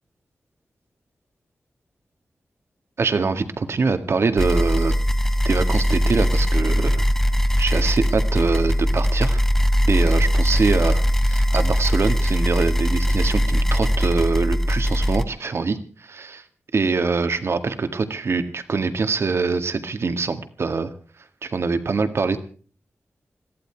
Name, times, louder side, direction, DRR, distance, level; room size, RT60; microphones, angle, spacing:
voice 1, 3.0-4.9 5.4-7.0 7.6-9.4 9.9-16.4 16.7-20.9 21.4-22.4, right 4 dB, 65° right, 9 dB, 1.9 m, -24 dB
sound 1, 4.4-15.2, equal, 10° left, 1.3 m, -20 dB
21.5 x 14.5 x 4.6 m, 0.41 s
cardioid pair, 70°, 5 cm